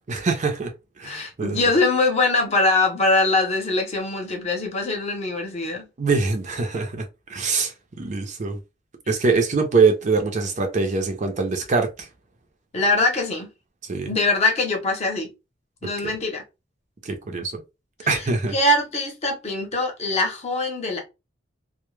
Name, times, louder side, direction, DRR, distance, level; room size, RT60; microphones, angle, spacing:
voice 1, 0.1-1.6 6.0-8.6 9.1-12.1 13.9-14.1 16.0-16.2 17.0-17.6 18.1-18.6, right 4 dB, 40° right, 0.5 m, -23 dB
voice 2, 1.0-5.9 12.7-13.5 14.1-15.3 15.8-16.4 18.5-21.0, left 2 dB, 35° left, 0.7 m, -22 dB
2.1 x 2.1 x 3.1 m
head